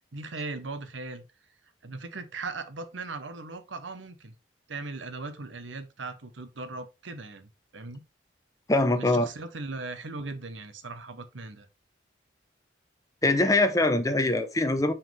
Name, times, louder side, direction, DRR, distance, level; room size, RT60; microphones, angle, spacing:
voice 1, 0.1-1.2 1.8-4.3 4.7-8.0 9.0-11.7, right 3 dB, 80° right, 1.0 m, -38 dB
voice 2, 8.7-9.3 13.2-14.9, left 2 dB, 20° left, 0.8 m, -23 dB
6.2 x 4.9 x 3.3 m
head